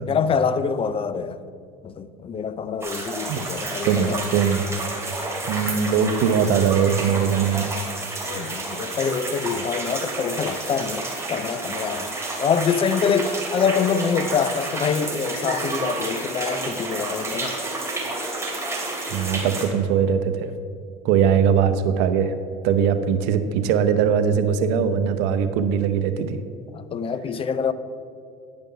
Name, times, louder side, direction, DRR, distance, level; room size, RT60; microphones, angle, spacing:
voice 1, 0.1-1.4 1.8-4.2 8.3-12.1 12.4-17.5 26.7-27.7, left 6 dB, 30° left, 0.4 m, -25 dB
sound 1, 2.8-19.7, right 2 dB, 15° right, 2.4 m, -30 dB
voice 2, 3.8-5.0 5.5-7.8 19.1-20.5 21.0-22.3 22.6-26.4, right 7 dB, 65° right, 0.7 m, -21 dB
9.6 x 5.3 x 5.7 m
hypercardioid pair, 80°, 19 cm